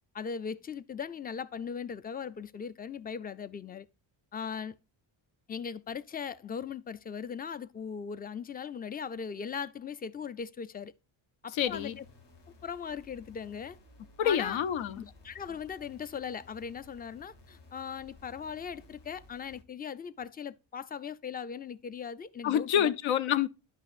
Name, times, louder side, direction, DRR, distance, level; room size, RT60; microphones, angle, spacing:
voice 1, 0.1-3.9 4.3-4.8 5.5-10.9 11.4-12.0 12.6-13.8 14.2-14.6 15.0-22.9, left 6 dB, 20° left, 0.3 m, -39 dB
voice 2, 11.5-12.0 14.2-15.1 22.4-23.5, left 9 dB, 80° left, 0.7 m, -27 dB
sound 1, 11.6-19.6, left 2 dB, 60° left, 1.7 m, -56 dB
10.5 x 5.7 x 2.4 m
cardioid pair, 115°, 47 cm